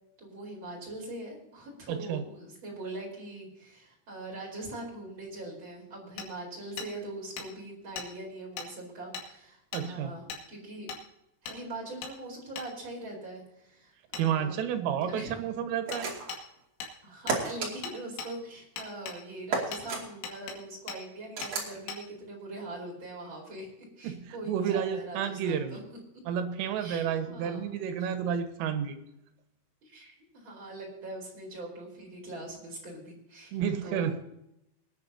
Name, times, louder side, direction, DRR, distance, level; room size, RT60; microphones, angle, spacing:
voice 1, 0.2-10.9 11.4-14.6 15.0-15.3 17.0-25.8 26.8-27.7 29.8-34.2, right 2 dB, 25° right, -2 dB, 4.6 m, -42 dB
voice 2, 1.9-2.2 9.7-10.1 14.1-16.1 24.0-25.8 26.3-29.0 33.5-34.2, right 8 dB, 80° right, 7 dB, 3.9 m, -31 dB
Hammer, 6.2-6.3 6.8-6.9 7.4-7.5 8.0-8.1 8.6-8.7 9.1-9.3 9.7-9.9 10.3-10.4 10.9-11.0 11.5-11.6 12.0-12.1 12.6-12.7 14.1-14.3 15.9-16.0 16.3-16.4 16.8-16.9 17.3-17.4 17.8-18.3 18.8-19.2 19.7-19.8 20.2-20.6 20.9-21.0 21.4-21.5 21.9-22.0, left 5 dB, 75° left, 4.6 m, -39 dB
sound 1, 15.9-16.4 17.3-17.7 19.5-20.0 21.4-21.7, right 4 dB, 40° right, 3.0 m, -32 dB
24.5 x 10.5 x 2.8 m, 0.82 s
omnidirectional pair, 5.9 m